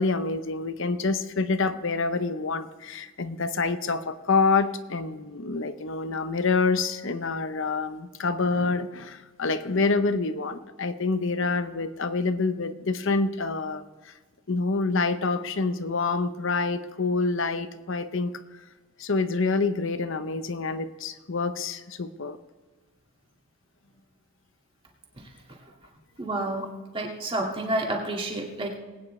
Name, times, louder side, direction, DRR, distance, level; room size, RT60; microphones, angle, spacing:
voice 1, 0.0-14.1 14.5-18.3 19.0-22.4, left 3 dB, 60° left, 11 dB, 0.8 m, -27 dB
voice 2, 26.2-26.7 26.9-28.8, right 1 dB, 25° right, -1 dB, 2.1 m, -29 dB
20.5 x 9.4 x 3.2 m, 1.3 s
head